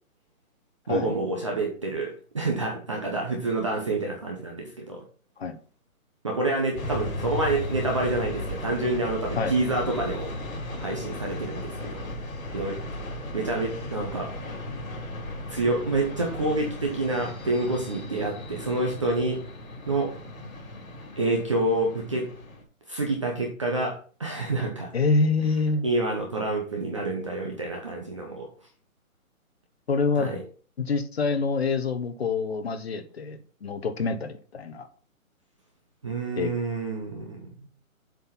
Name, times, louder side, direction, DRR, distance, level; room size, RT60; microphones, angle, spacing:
voice 1, 0.9-5.0 6.2-10.3 10.8-12.0 12.5-12.8 13.3-14.3 15.5-19.4 19.9-20.1 21.2-22.3 22.9-24.9 25.8-28.5 30.2-30.4 36.0-37.5, right 2 dB, 20° right, 0 dB, 0.8 m, -28 dB
sound 1, 6.7-22.6, left 1 dB, 70° left, 3.3 m, -36 dB
voice 2, 24.9-25.9 29.9-30.3 30.9-34.9 36.4-36.5, left 4 dB, 45° left, 8 dB, 1.1 m, -26 dB
7.7 x 4.5 x 5.7 m, 0.41 s
hypercardioid pair, 170°, 42 cm